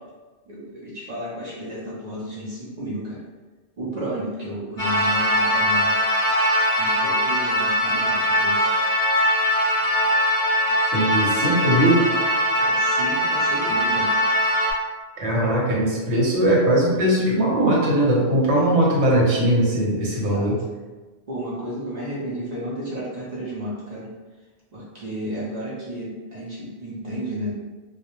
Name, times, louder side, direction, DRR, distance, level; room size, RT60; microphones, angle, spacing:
voice 1, 0.5-3.2 3.8-5.9 6.8-8.7 12.6-14.1 20.0-20.5 21.3-24.1 24.7-27.5, right 1 dB, 50° right, -7 dB, 0.6 m, -32 dB
sound 1, 4.8-14.7, equal, 40° left, 0.8 m, -21 dB
voice 2, 10.9-12.0 15.2-20.6, right 1 dB, 75° right, -4 dB, 1.0 m, -20 dB
2.2 x 2.1 x 2.9 m, 1.3 s
omnidirectional pair, 1.1 m